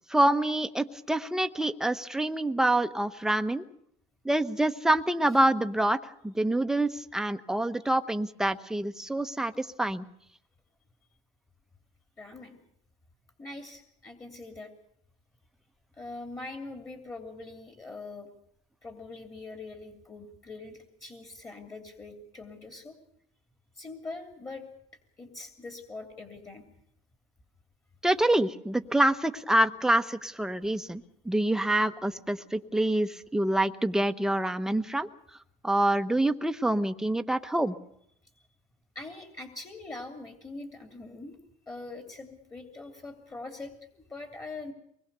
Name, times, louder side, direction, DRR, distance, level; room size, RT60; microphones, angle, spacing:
voice 1, 0.1-3.6 4.2-6.0 6.2-10.0 28.0-35.1 35.6-37.7, right 1 dB, 5° right, 9 dB, 1.0 m, -26 dB
voice 2, 12.2-12.6 13.4-14.7 15.9-18.3 18.8-23.0 23.8-24.6 25.2-26.6 38.9-41.4 41.7-44.7, left 3 dB, 20° left, 5 dB, 2.9 m, -43 dB
24.5 x 21.0 x 6.8 m, 0.71 s
cardioid pair, 125°, 18 cm